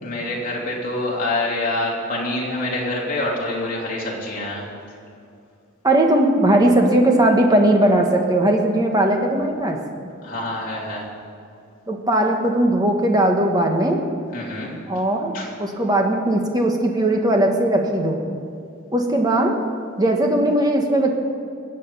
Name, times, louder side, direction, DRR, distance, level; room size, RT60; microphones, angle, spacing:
voice 1, 0.0-4.7 10.2-11.1 14.3-14.7 15.3-15.5, left 2 dB, 40° left, -4 dB, 3.1 m, -26 dB
voice 2, 5.8-9.8 11.9-14.0 14.9-15.3 15.6-18.2 18.9-19.6 20.0-21.1, right 1 dB, 20° right, 2 dB, 1.4 m, -18 dB
21.5 x 8.4 x 5.5 m, 2.5 s
head